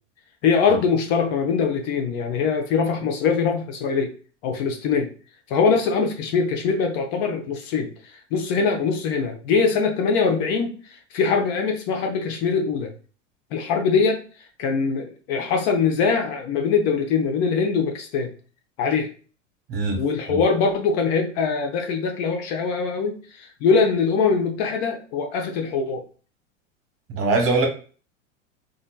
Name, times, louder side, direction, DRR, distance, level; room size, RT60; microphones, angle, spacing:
voice 1, 0.4-4.1 4.4-5.1 5.5-7.9 8.3-10.7 11.1-12.9 13.5-14.2 14.6-18.3 18.8-19.1 20.0-26.0, left 5 dB, 45° left, 4 dB, 0.7 m, -22 dB
voice 2, 19.7-20.0 20.3-20.4 27.1-27.7, right 3 dB, 35° right, 2 dB, 1.1 m, -22 dB
3.1 x 2.5 x 2.2 m, 0.39 s
hypercardioid pair, 85°, 38 cm